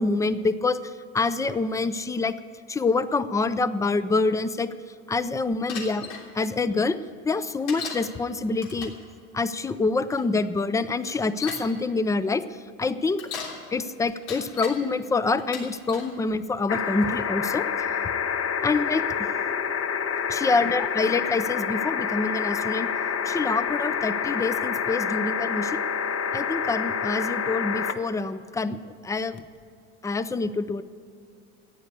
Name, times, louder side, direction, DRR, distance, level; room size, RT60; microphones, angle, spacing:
voice 1, 0.0-2.4 2.7-4.7 5.1-6.1 6.3-7.0 7.2-8.9 9.3-12.4 12.8-13.2 13.7-17.7 18.6-19.0 20.3-22.9 23.3-25.8 26.3-29.4 30.0-30.8, left 3 dB, 10° left, 13 dB, 0.4 m, -26 dB
Bicycle, 5.7-6.2 7.7-8.1 8.6-9.0 10.1-10.2 11.0-11.7 13.0-13.6 14.1-14.8 15.4-16.1 16.7-17.1, left 6 dB, 90° left, 3.3 m, -36 dB
sound 1, 16.7-27.9 29.4-29.5, left 7 dB, 45° left, 1.0 m, -27 dB
14.5 x 9.6 x 8.4 m, 2.4 s
cardioid pair, 130°, 34 cm